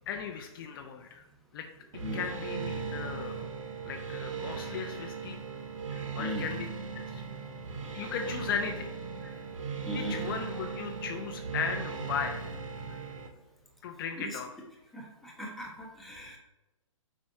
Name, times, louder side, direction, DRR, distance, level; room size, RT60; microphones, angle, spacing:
voice 1, 0.1-1.2 1.5-1.7 2.1-3.5 3.8-5.4 5.9-6.7 6.9-7.2 7.9-8.9 9.8-12.4 13.8-14.5, left 7 dB, 40° left, 4 dB, 0.6 m, -37 dB
sound 1, 1.9-13.3, right 5 dB, 70° right, 1.2 m, -38 dB
voice 2, 7.1-7.6 9.2-9.3 9.8-10.2 12.8-13.0 14.2-14.4 14.9-16.4, equal, ahead, -3 dB, 1.1 m, -39 dB
7.0 x 5.1 x 2.7 m, 0.99 s
hypercardioid pair, 135°, 17 cm